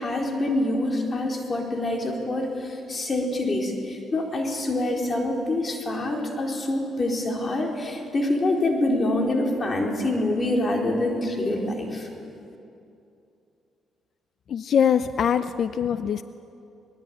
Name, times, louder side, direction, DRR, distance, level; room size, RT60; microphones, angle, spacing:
voice 1, 0.0-12.1, left 1 dB, 35° left, 1 dB, 4.1 m, -26 dB
voice 2, 14.5-16.2, left 8 dB, 60° left, 12 dB, 0.6 m, -23 dB
23.0 x 20.0 x 8.7 m, 2.7 s
cardioid pair, 90°, 0 cm